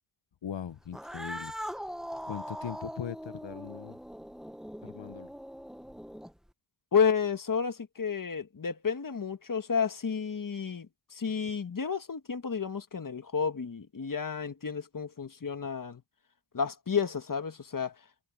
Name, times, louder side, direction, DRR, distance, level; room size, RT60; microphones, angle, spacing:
voice 1, 0.4-1.5 2.2-4.0 4.8-5.3, left 8 dB, 70° left, 1.1 m, -40 dB
Cat, 0.9-6.5, equal, ahead, 1.1 m, -41 dB
voice 2, 6.9-10.9 11.1-16.0 16.5-17.9, left 6 dB, 45° left, 1.5 m, -31 dB
wide cardioid pair, 70°, 45 cm